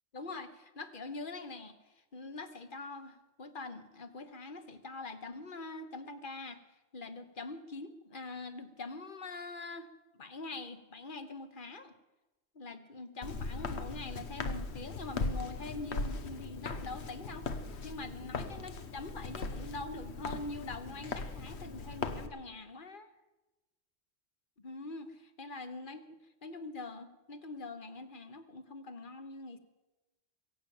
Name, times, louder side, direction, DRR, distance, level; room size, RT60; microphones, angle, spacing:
voice 1, 0.1-1.8 2.1-6.6 6.9-9.9 10.1-11.9 12.5-17.5 17.8-23.1 24.6-29.6, left 3 dB, 50° left, 9 dB, 1.4 m, -44 dB
Walk footsteps, 13.2-22.3, left 3 dB, 85° left, 1.4 m, -39 dB
22.5 x 8.8 x 7.2 m, 1.1 s
omnidirectional pair, 1.1 m